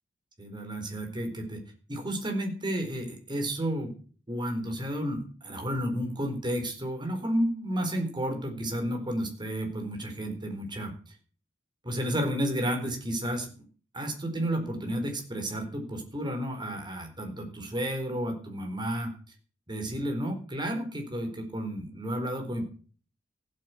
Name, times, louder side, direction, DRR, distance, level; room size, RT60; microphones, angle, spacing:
voice 1, 0.4-1.6 1.9-3.9 4.3-10.9 11.8-13.6 13.9-19.1 19.7-22.7, equal, 25° right, 3 dB, 4.4 m, -32 dB
15.5 x 8.5 x 8.4 m, 0.42 s
head